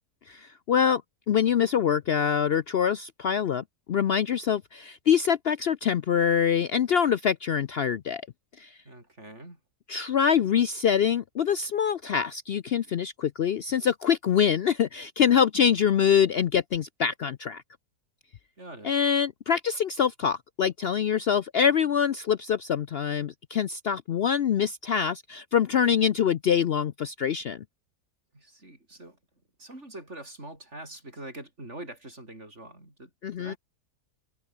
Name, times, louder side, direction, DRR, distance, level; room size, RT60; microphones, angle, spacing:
voice 1, 0.3-1.0 1.3-8.2 8.6-8.8 9.9-17.6 18.8-27.6 33.2-33.5, left 8 dB, 85° left, 0.5 m, -25 dB
voice 2, 8.9-9.6 18.6-18.9 28.3-29.2 29.6-33.1 33.4-33.6, right 1 dB, 40° right, 7.6 m, -44 dB
omnidirectional pair, 1.8 m